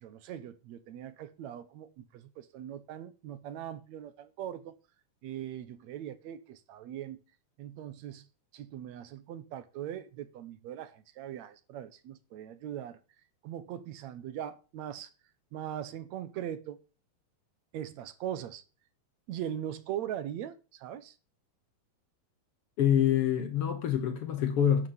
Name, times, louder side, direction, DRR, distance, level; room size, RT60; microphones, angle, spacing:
voice 1, 0.0-4.7 5.2-7.2 7.6-8.3 8.5-13.0 13.4-15.1 15.5-16.8 17.7-18.6 19.3-21.2, right 10 dB, 70° right, 2.1 m, -40 dB
voice 2, 22.8-24.9, left 9 dB, 65° left, 1.6 m, -26 dB
11.0 x 6.0 x 7.9 m
omnidirectional pair, 3.4 m